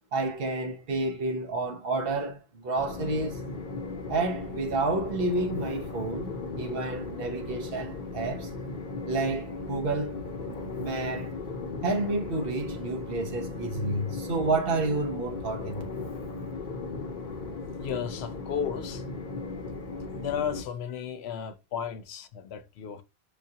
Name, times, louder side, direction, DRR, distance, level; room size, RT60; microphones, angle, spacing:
voice 1, 0.1-3.4 4.1-8.5 9.1-10.1 10.4-11.3 11.8-15.8, right 2 dB, 65° right, 1.1 m, -30 dB
Train, 2.8-20.6, left 3 dB, 55° left, 0.9 m, -37 dB
voice 2, 17.8-19.0 20.1-23.0, left 8 dB, 80° left, 0.8 m, -34 dB
5.1 x 2.4 x 2.7 m
omnidirectional pair, 1.0 m